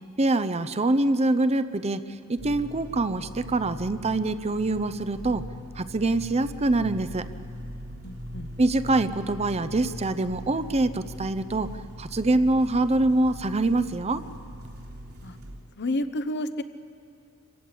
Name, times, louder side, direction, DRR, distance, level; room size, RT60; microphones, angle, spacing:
voice 1, 0.2-2.0 2.3-5.4 5.7-7.3 8.6-11.7 12.0-14.2, right 2 dB, 30° right, 13 dB, 0.6 m, -24 dB
sound 1, 2.4-15.6, equal, 80° right, 3.9 m, -40 dB
voice 2, 8.0-8.5 15.2-15.4 15.8-16.6, left 1 dB, 50° left, 11 dB, 0.9 m, -30 dB
26.0 x 15.5 x 8.7 m, 2.3 s
head